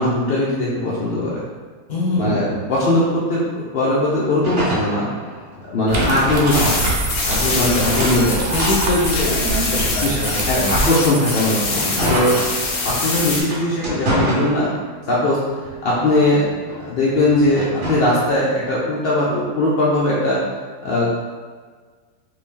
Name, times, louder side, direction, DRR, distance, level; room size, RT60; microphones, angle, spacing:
voice 1, 0.0-1.4 2.1-5.1 5.7-6.9 7.2-8.4 9.8-11.8 12.1-12.3 12.8-14.7 15.1-15.4 15.8-16.4 16.9-20.4 20.8-21.1, left 1 dB, 80° left, -7 dB, 0.5 m, -19 dB
voice 2, 1.9-2.7 7.4-7.5 8.5-10.7 11.8-11.9, left 2 dB, 40° left, -5 dB, 0.6 m, -23 dB
sound 1, 4.4-7.0 7.3-9.0 9.5-13.0 13.4-15.1 15.5-18.1, equal, 40° right, 0.8 m, -27 dB
sound 2, 5.9-10.9, right 2 dB, 70° right, 1.0 m, -25 dB
sound 3, 6.5-13.4, left 3 dB, 65° left, 0.9 m, -24 dB
2.7 x 2.7 x 3.6 m, 1.5 s
omnidirectional pair, 1.7 m